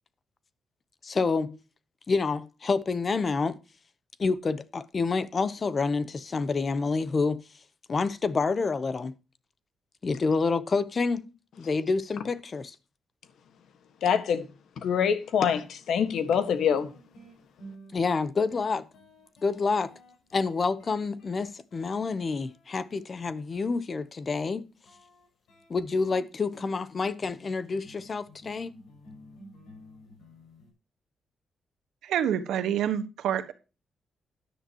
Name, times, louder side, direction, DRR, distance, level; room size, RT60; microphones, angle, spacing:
voice 1, 1.0-1.6 2.1-3.6 4.2-7.4 7.9-9.2 10.0-11.3 11.6-12.8 17.9-18.9 19.4-19.9 20.3-24.7 25.7-28.8, left 4 dB, 30° left, 0.8 m, -28 dB
voice 2, 14.0-14.5 14.8-16.9, left 7 dB, 60° left, 1.5 m, -25 dB
sound 1, 15.6-15.7 16.1-23.3 24.8-30.7, equal, 80° left, 6.9 m, -53 dB
voice 3, 32.0-33.5, right 9 dB, 85° right, 1.3 m, -27 dB
13.0 x 10.5 x 2.9 m
cardioid pair, 165°, 0 cm